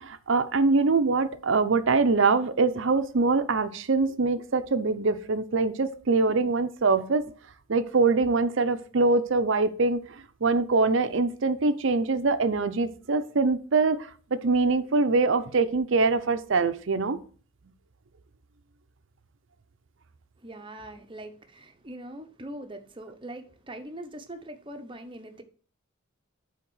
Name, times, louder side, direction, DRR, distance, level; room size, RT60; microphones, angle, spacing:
voice 1, 0.0-7.2 7.7-17.2, right 3 dB, 60° right, 0.6 m, -24 dB
voice 2, 20.4-25.4, right 1 dB, 25° right, 0.8 m, -42 dB
8.6 x 3.6 x 6.2 m
head